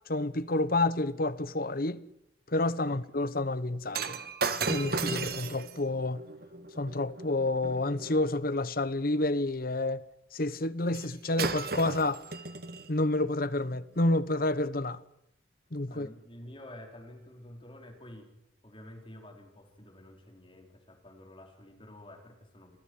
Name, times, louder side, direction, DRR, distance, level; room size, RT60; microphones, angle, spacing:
voice 1, 0.1-2.0 2.5-4.2 4.7-6.2 6.8-10.0 10.3-12.2 12.9-15.0 15.7-16.1, left 2 dB, 50° left, 1.1 m, -29 dB
Shatter, 3.9-8.3 10.9-11.1 11.4-12.9 13.6-13.8, right 4 dB, 50° right, 1.6 m, -35 dB
voice 2, 15.9-18.3 18.6-22.8, left 1 dB, 25° left, 4.0 m, -49 dB
26.5 x 16.5 x 9.3 m
head